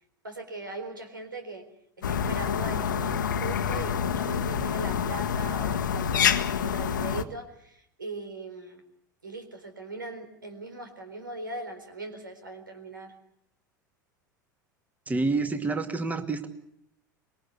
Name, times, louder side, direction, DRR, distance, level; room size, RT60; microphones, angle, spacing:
voice 1, 0.2-1.7 2.0-8.8 9.2-13.2, right 2 dB, 80° right, 6 dB, 4.1 m, -40 dB
sound 1, 2.0-7.2, left 8 dB, 70° left, 1.4 m, -27 dB
voice 2, 15.1-16.5, right 3 dB, 15° right, 7 dB, 2.2 m, -28 dB
25.5 x 21.5 x 8.0 m, 0.71 s
figure-of-eight pair, 75°, 11 cm